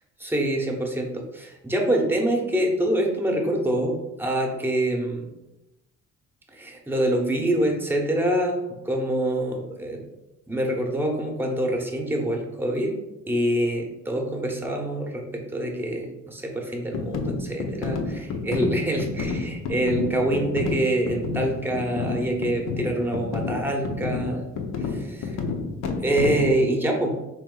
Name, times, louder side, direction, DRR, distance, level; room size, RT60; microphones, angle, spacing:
voice 1, 0.2-5.3 6.5-10.0 10.5-12.9 13.3-24.4 24.9-25.4 26.0-27.1, right 1 dB, 5° right, 1 dB, 0.9 m, -25 dB
sound 1, 16.9-26.6, left 4 dB, 60° left, 0.7 m, -30 dB
3.9 x 3.0 x 3.8 m, 0.98 s
cardioid pair, 90°, 30 cm